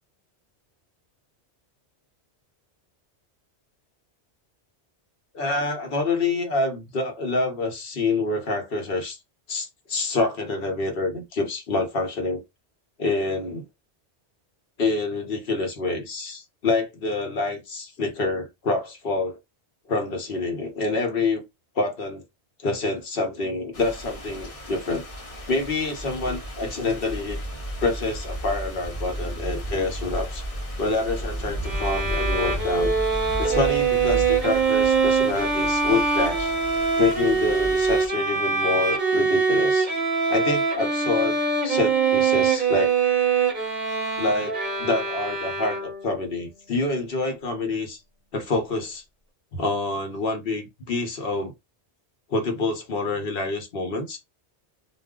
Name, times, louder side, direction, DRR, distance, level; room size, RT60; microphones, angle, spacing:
voice 1, 5.3-9.2 9.5-12.4 13.0-13.6 14.8-19.4 19.9-21.4 21.7-22.2 22.6-25.0 25.5-27.4 27.8-30.4 30.8-32.9 33.4-36.5 37.0-39.9 40.3-41.4 41.6-42.9 44.2-48.0 48.3-49.0 49.5-51.5 52.3-54.2, left 3 dB, 55° left, 1.1 m, -27 dB
sound 1, 23.7-38.1, equal, 35° left, 0.8 m, -33 dB
Bowed string instrument, 31.6-46.2, right 5 dB, 45° right, 0.9 m, -23 dB
2.4 x 2.1 x 3.6 m
omnidirectional pair, 1.2 m